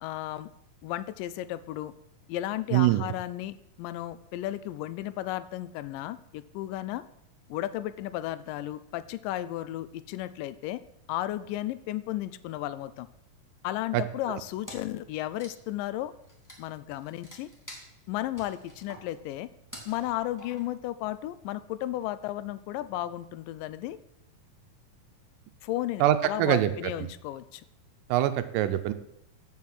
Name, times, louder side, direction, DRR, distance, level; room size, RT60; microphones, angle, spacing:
voice 1, 0.0-0.5 0.8-1.9 2.3-7.0 7.5-10.8 11.1-13.1 13.6-16.1 16.6-17.5 18.1-19.5 19.9-24.0 25.6-27.6, left 14 dB, 80° left, 15 dB, 2.1 m, -34 dB
voice 2, 2.7-3.0 13.9-14.0 26.0-26.7 28.1-28.9, right 13 dB, 85° right, 10 dB, 2.2 m, -23 dB
Wood, 14.6-15.0 15.3-20.9, equal, 15° left, 0.6 m, -48 dB
7.4 x 6.2 x 7.3 m, 0.78 s
omnidirectional pair, 3.9 m